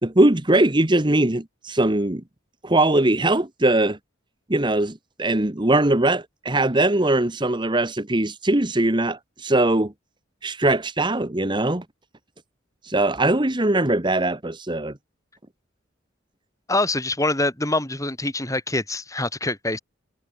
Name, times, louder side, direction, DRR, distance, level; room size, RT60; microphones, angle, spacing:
voice 1, 0.0-2.2 2.6-4.0 4.5-9.9 10.4-11.8 12.8-15.0, right 2 dB, 25° right, 1.4 m, -21 dB
voice 2, 16.7-19.8, left 2 dB, 15° left, 5.8 m, -25 dB
head